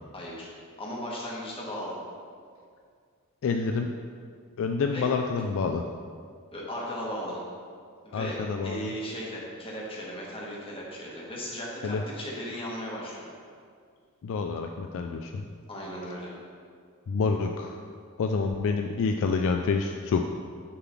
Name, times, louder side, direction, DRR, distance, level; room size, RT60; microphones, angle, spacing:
voice 1, 0.1-2.0 4.9-5.1 6.5-7.4 8.0-13.3 15.7-16.3, equal, 25° left, -4 dB, 1.4 m, -37 dB
voice 2, 3.4-3.9 4.6-5.8 8.1-8.9 11.8-12.0 14.2-15.4 17.1-17.8 18.2-20.2, left 4 dB, 60° left, 4 dB, 0.3 m, -28 dB
6.8 x 3.8 x 5.9 m, 2.1 s
head